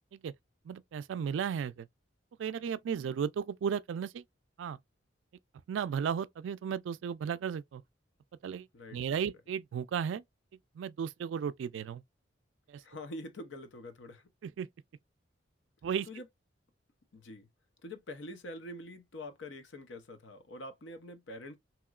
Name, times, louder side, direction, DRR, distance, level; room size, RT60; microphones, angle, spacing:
voice 1, 0.7-1.9 2.4-4.2 4.6-4.8 5.7-7.8 8.4-8.7 8.9-10.2 10.8-12.0 12.7-12.8 14.4-14.7 15.8-16.1, right 7 dB, 85° right, 0.3 m, -34 dB
voice 2, 8.7-9.2 12.8-14.3 16.1-16.3 17.1-17.5 17.8-21.6, left 1 dB, 80° left, 0.7 m, -45 dB
2.9 x 2.9 x 2.3 m
head